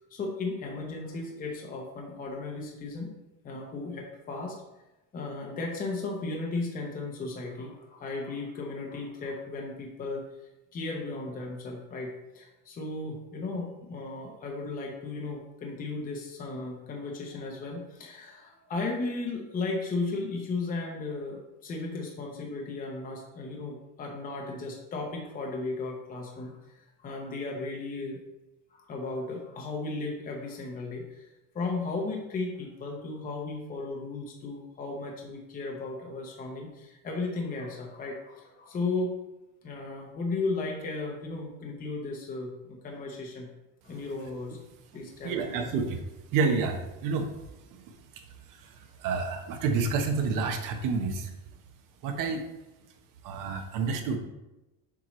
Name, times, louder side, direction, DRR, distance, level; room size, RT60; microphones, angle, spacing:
voice 1, 0.1-3.1 3.4-4.6 5.1-10.2 10.7-28.2 28.7-31.3 31.5-39.1 39.6-43.5 43.8-44.6 44.9-45.9, left 3 dB, 20° left, 0 dB, 0.8 m, -35 dB
voice 2, 45.2-46.0 46.3-47.3 47.7-51.3 52.0-52.5 53.2-54.2, right 4 dB, 50° right, 5 dB, 1.0 m, -29 dB
7.2 x 4.5 x 3.1 m, 0.99 s
cardioid pair, 150°, 42 cm